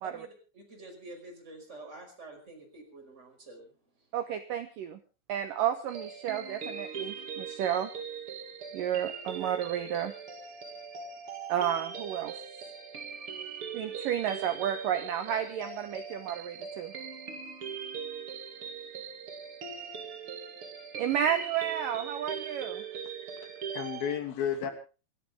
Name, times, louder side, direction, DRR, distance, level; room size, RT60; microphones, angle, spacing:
voice 1, 0.5-3.7, right 2 dB, 15° right, 2 dB, 5.4 m, -48 dB
voice 2, 4.1-5.0 5.3-7.9 8.7-10.1 11.5-12.3 13.7-16.9 21.0-22.8, right 9 dB, 75° right, 9 dB, 2.0 m, -31 dB
sound 1, 5.9-24.2, right 6 dB, 40° right, 2.4 m, -41 dB
voice 3, 23.0-24.7, left 8 dB, 60° left, 6 dB, 4.2 m, -34 dB
28.0 x 12.5 x 3.6 m, 0.34 s
omnidirectional pair, 5.1 m